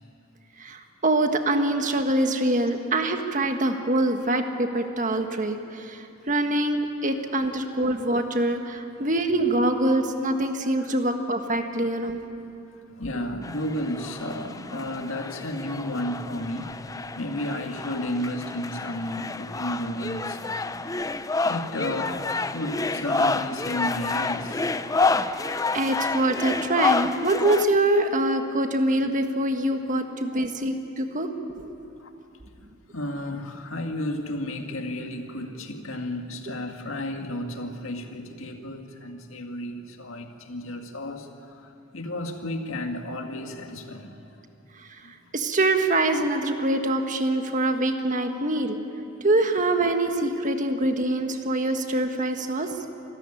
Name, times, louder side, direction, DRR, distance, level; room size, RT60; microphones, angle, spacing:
voice 1, 0.6-12.2 25.2-25.4 25.7-31.3 31.5-31.7 44.8-44.9 45.3-48.8 49.2-52.7, right 1 dB, 40° right, 6 dB, 1.6 m, -24 dB
voice 2, 7.5-7.9 10.8-11.2 12.7-16.9 17.2-20.8 21.4-25.0 32.0-32.1 32.9-44.4 45.0-45.1, left 1 dB, 90° left, 4 dB, 2.0 m, -33 dB
sound 1, 13.4-27.7, left 3 dB, 15° left, 0.5 m, -29 dB
26.5 x 14.0 x 9.9 m, 2.7 s
head